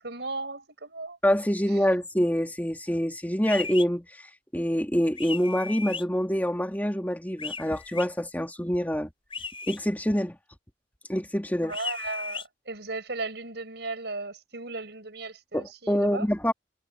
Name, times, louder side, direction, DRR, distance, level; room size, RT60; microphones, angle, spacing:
voice 1, 0.0-1.2 11.7-16.3, right 3 dB, 70° right, 6.9 m, -36 dB
voice 2, 1.2-9.1 9.7-10.3 11.1-11.7 15.5-16.5, equal, 10° left, 2.7 m, -26 dB
sound 1, 3.4-3.9 5.2-6.0 7.4-8.1 9.3-9.8 11.7-12.4, left 4 dB, 30° left, 5.7 m, -36 dB
head